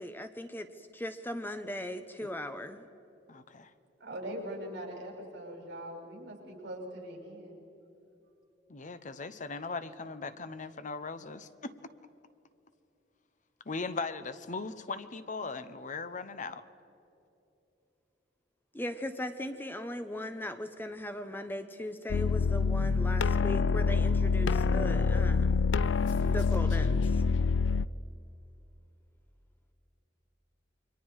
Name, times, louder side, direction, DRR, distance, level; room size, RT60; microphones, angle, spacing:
voice 1, 0.0-2.8 18.7-25.7 26.2-27.1, left 1 dB, 10° left, 8 dB, 0.8 m, -38 dB
voice 2, 3.3-3.7 8.7-11.7 13.7-16.6, left 4 dB, 45° left, 12 dB, 0.9 m, -39 dB
voice 3, 4.0-7.6, right 1 dB, 65° right, -1 dB, 7.2 m, -41 dB
sound 1, 22.1-27.8, left 4 dB, 75° left, 0.4 m, -26 dB
29.5 x 24.0 x 4.8 m, 2.8 s
head